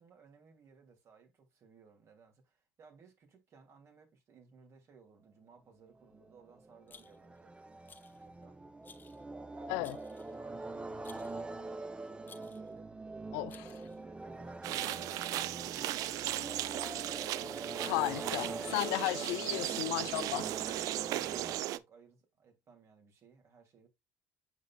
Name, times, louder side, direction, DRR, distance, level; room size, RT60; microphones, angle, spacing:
voice 1, 0.0-7.5 8.2-8.6 9.5-10.1 10.4-12.9 13.6-17.3 21.0-23.9, right 5 dB, 50° right, 2.6 m, -60 dB
sound 1, 6.0-21.6, right 2 dB, 15° right, 0.7 m, -44 dB
Rattle, 6.9-7.4 7.9-8.2 8.8-9.2 9.8-10.4 11.0-11.4 12.2-12.7 13.5-14.0, left 5 dB, 30° left, 0.8 m, -58 dB
voice 2, 13.3-13.7 17.8-20.8, left 20 dB, 85° left, 0.4 m, -35 dB
sound 2, 14.6-21.8, right 14 dB, 70° right, 0.4 m, -37 dB
7.3 x 5.6 x 2.3 m
supercardioid pair, 90°, 6 cm